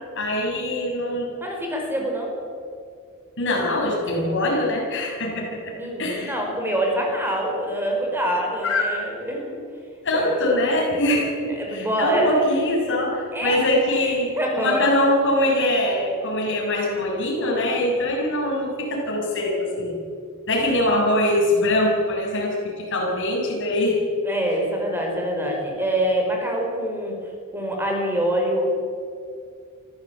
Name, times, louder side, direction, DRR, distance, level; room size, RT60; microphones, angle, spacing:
voice 1, 0.2-1.3 3.4-5.7 6.0-6.3 8.6-8.8 10.0-14.3 14.5-19.9 20.5-24.0, left 1 dB, 60° left, -2 dB, 7.1 m, -23 dB
voice 2, 1.4-2.3 5.7-9.6 10.1-10.4 11.5-12.4 13.3-13.7 14.0-14.9 24.2-27.2 27.5-28.7, right 1 dB, 10° right, 0 dB, 4.9 m, -25 dB
24.0 x 15.5 x 8.8 m, 2.3 s
head